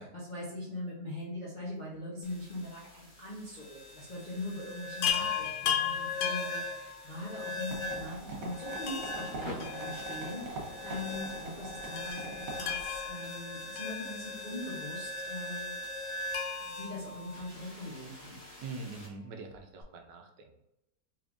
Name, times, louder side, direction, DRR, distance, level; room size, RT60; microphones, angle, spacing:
voice 1, 0.0-15.8 16.5-18.4, left 1 dB, 45° left, -8 dB, 0.5 m, -41 dB
sound 1, 2.2-19.1, left 1 dB, 20° left, 0.8 m, -42 dB
Chime, 5.0-7.4 8.9-10.4 10.7-10.8 12.0-14.7 16.3-17.9 19.5-19.6 19.8-19.9, left 9 dB, 80° left, 1.2 m, -36 dB
sound 2, 7.7-13.1, right 2 dB, 60° right, 1.1 m, -43 dB
voice 2, 18.6-20.6, right 3 dB, 75° right, 3 dB, 1.2 m, -44 dB
3.5 x 3.3 x 2.4 m, 0.88 s
omnidirectional pair, 1.9 m